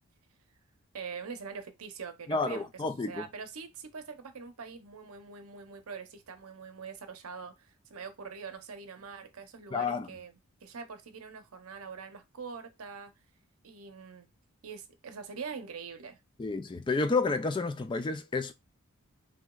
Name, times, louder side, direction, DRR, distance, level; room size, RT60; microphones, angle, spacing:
voice 1, 0.9-13.1 13.6-14.3 14.6-16.2, right 5 dB, 75° right, 0.7 m, -44 dB
voice 2, 2.3-3.3 9.7-10.1 16.4-18.5, left 3 dB, 20° left, 0.3 m, -30 dB
3.3 x 2.9 x 2.3 m
head